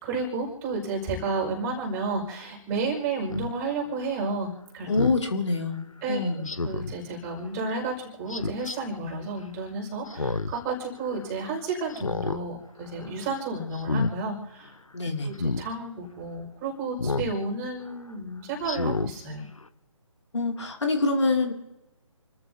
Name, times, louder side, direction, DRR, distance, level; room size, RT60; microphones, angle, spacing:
voice 1, 0.0-4.9 6.0-14.7 15.2-19.5, right 3 dB, 15° right, 0 dB, 5.2 m, -32 dB
Speech synthesizer, 3.3-3.5 5.0-5.2 6.5-6.9 8.3-8.8 10.1-10.6 11.0-11.1 11.9-12.4 12.8-13.1 13.7-14.1 15.4-15.6 17.0-17.3 17.8-17.9 18.6-19.1 19.6-19.7, left 3 dB, 80° left, 0.9 m, -29 dB
voice 2, 4.9-5.8 6.1-6.5 14.9-15.3 20.3-21.5, left 3 dB, 60° left, 3 dB, 2.6 m, -25 dB
30.0 x 14.0 x 2.8 m, 0.95 s
figure-of-eight pair, 145°, 17 cm